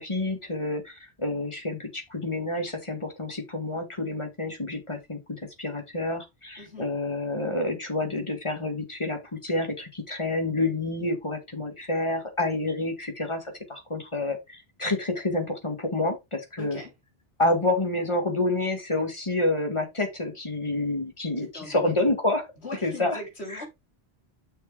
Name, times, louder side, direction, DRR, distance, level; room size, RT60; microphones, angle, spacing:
voice 1, 0.1-0.8 1.2-1.8 2.2-5.2 5.6-6.2 6.8-9.2 9.5-9.7 10.1-13.4 13.9-14.4 14.8-16.1 16.6-16.8 17.4-22.4 22.8-23.2 23.5-23.6, left 2 dB, 30° left, 1.8 m, -28 dB
voice 2, 6.6-6.9 16.6-16.9 21.4-22.0 22.6-23.7, left 1 dB, 80° left, 3.7 m, -40 dB
6.4 x 4.6 x 4.7 m
omnidirectional pair, 1.1 m